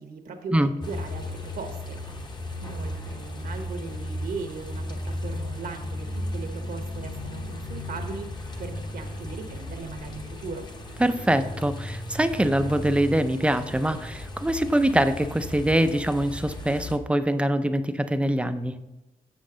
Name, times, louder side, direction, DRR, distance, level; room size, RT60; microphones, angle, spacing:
voice 1, 0.0-2.0 2.6-8.3 8.6-10.6, right 4 dB, 75° right, 5 dB, 1.1 m, -38 dB
sound 1, 0.8-17.0, left 1 dB, 30° left, 0.8 m, -35 dB
voice 2, 11.0-18.7, right 1 dB, 10° right, 10 dB, 0.4 m, -24 dB
7.4 x 7.2 x 3.8 m, 0.99 s
wide cardioid pair, 165°, 15 cm